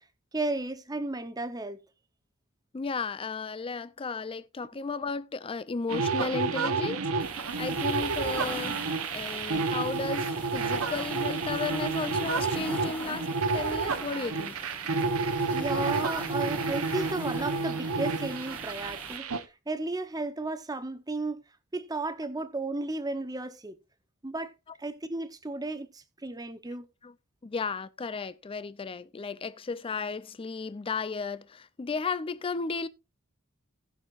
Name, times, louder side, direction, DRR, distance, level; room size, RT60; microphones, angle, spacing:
voice 1, 0.3-1.8 15.5-19.3 19.7-21.4 21.7-23.8 24.2-24.5 24.8-26.9, right 2 dB, 20° right, 0.8 m, -34 dB
voice 2, 2.7-14.6 27.0-27.1 27.4-32.9, left 4 dB, 25° left, 0.4 m, -34 dB
sound 1, 5.9-19.4, right 4 dB, 80° right, 0.9 m, -30 dB
sound 2, 7.2-19.2, left 1 dB, 5° left, 2.2 m, -43 dB
18.5 x 6.3 x 2.4 m
head